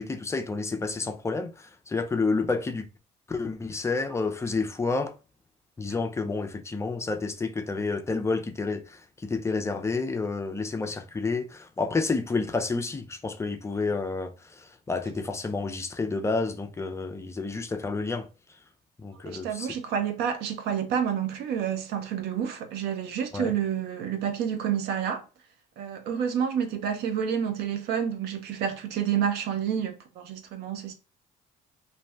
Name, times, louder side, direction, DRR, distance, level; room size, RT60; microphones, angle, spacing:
voice 1, 0.0-2.8 3.3-5.2 5.8-18.3 19.0-19.7 23.3-23.5, left 3 dB, 15° left, 0.4 m, -30 dB
voice 2, 19.2-25.2 25.8-30.9, right 8 dB, 75° right, 0.5 m, -29 dB
2.6 x 2.1 x 3.2 m
cardioid pair, 110°, 17 cm